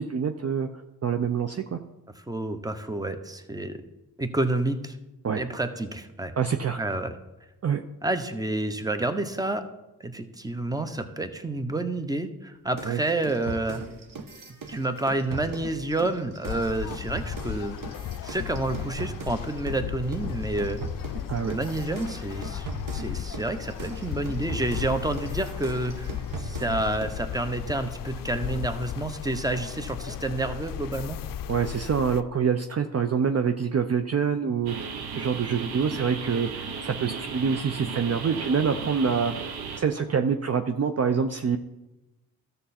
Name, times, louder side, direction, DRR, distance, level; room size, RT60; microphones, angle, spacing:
voice 1, 0.0-1.8 5.2-5.4 6.4-6.8 7.6-7.8 12.8-13.0 21.3-21.5 31.5-34.8 35.1-39.3 39.8-41.6, right 6 dB, 40° right, 7 dB, 0.7 m, -26 dB
voice 2, 2.3-3.8 4.2-5.0 5.4-6.3 6.8-7.1 8.0-9.6 10.0-13.8 14.7-17.8 18.2-20.8 21.5-22.7 22.9-26.1 26.4-31.2, right 2 dB, 10° right, 9 dB, 1.0 m, -29 dB
sound 1, 12.8-19.8 20.1-27.2, right 3 dB, 55° right, 1.3 m, -39 dB
sound 2, 16.4-32.2, left 10 dB, 60° left, 0.5 m, -35 dB
sound 3, 34.7-39.8, right 5 dB, 75° right, 1.0 m, -35 dB
12.5 x 6.8 x 4.3 m, 0.99 s
cardioid pair, 60°, 38 cm